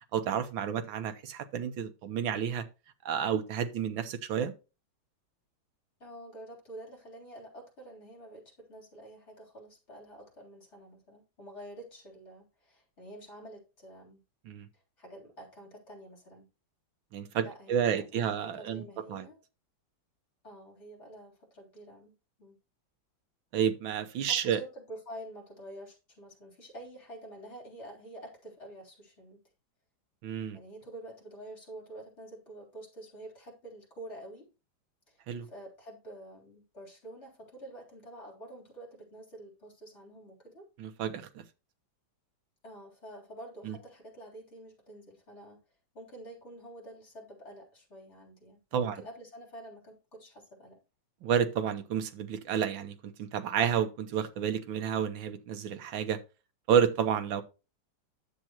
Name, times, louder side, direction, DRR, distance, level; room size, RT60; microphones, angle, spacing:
voice 1, 0.1-2.7 3.1-4.5 14.5-14.7 17.1-18.8 19.1-19.3 23.5-24.6 30.2-30.6 35.3-35.5 40.8-41.4 43.6-43.8 48.7-49.0 51.2-56.2 56.7-57.4, right 8 dB, 80° right, 1.7 m, -30 dB
voice 2, 6.0-14.2 14.7-16.5 17.4-19.4 20.4-22.1 22.4-22.6 24.2-29.4 30.5-34.5 35.1-40.7 42.6-45.6 45.9-50.8, right 1 dB, 35° left, 3.8 m, -48 dB
10.0 x 7.5 x 2.9 m
omnidirectional pair, 2.1 m